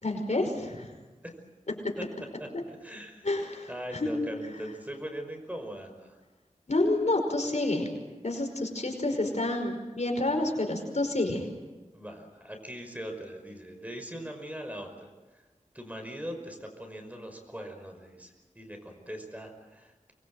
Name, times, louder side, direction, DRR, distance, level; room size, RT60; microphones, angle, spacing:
voice 1, 0.0-0.9 3.2-4.1 6.7-7.9 8.2-11.4, left 2 dB, 65° left, 3 dB, 5.2 m, -29 dB
voice 2, 2.4-3.3 3.7-6.2 11.9-15.4 15.7-20.1, equal, 10° right, 4 dB, 5.6 m, -41 dB
26.0 x 22.0 x 8.0 m, 1.2 s
wide cardioid pair, 60°, 13 cm